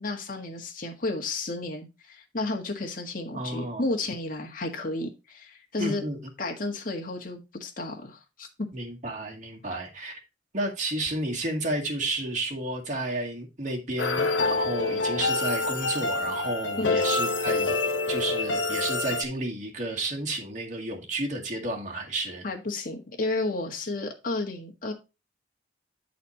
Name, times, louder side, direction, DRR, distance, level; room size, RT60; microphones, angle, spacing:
voice 1, 0.0-6.0 6.4-8.7 16.8-17.0 22.4-24.9, left 2 dB, 45° left, 1.7 m, -32 dB
voice 2, 3.3-3.8 5.8-6.2 8.7-10.2 10.5-17.8 18.1-22.5, right 2 dB, 40° right, 2.1 m, -32 dB
sound 1, 14.0-19.2, left 3 dB, 80° left, 1.1 m, -26 dB
10.5 x 4.3 x 4.2 m
head